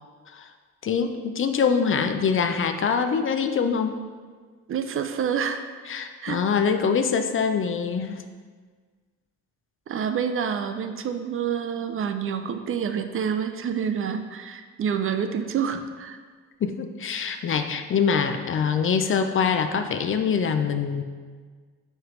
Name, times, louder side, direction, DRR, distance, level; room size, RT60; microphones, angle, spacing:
voice 1, 0.8-3.9 5.9-8.2 16.6-21.0, left 6 dB, 45° left, 7 dB, 0.5 m, -24 dB
voice 2, 4.7-5.7 6.2-6.4 9.9-16.2, right 7 dB, 45° right, 8 dB, 0.4 m, -28 dB
9.4 x 3.2 x 3.2 m, 1.5 s
cardioid pair, 90°, 30 cm